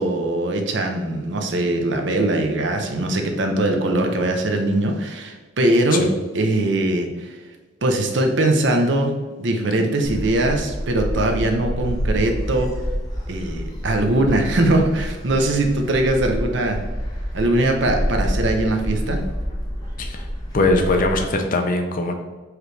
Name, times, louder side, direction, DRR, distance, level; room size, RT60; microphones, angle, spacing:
voice 1, 0.0-6.1 6.3-7.3 7.8-9.1 9.4-12.7 13.3-16.8 17.3-19.2, right 1 dB, 70° right, 3 dB, 0.7 m, -21 dB
Gull seagull, 10.0-21.2, equal, 20° left, 0.9 m, -28 dB
voice 2, 20.5-22.1, left 2 dB, 45° left, 4 dB, 0.6 m, -21 dB
4.8 x 3.1 x 3.2 m, 1.3 s
head